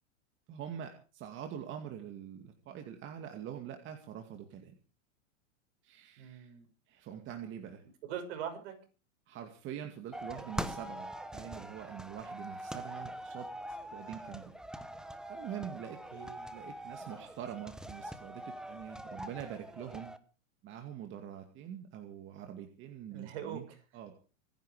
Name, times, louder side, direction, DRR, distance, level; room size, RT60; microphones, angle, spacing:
voice 1, 0.5-4.7 5.8-6.5 6.9-7.8 9.3-14.6 15.3-16.0 16.5-20.1 20.6-24.2, right 9 dB, 30° right, 5 dB, 2.3 m, -44 dB
voice 2, 6.2-6.7 8.0-8.8 16.1-16.5 23.1-23.8, right 9 dB, 55° right, 6 dB, 6.3 m, -42 dB
sound 1, 10.1-20.2, right 1 dB, ahead, 0.9 m, -43 dB
25.5 x 10.5 x 5.0 m, 0.37 s
supercardioid pair, 145°, 39 cm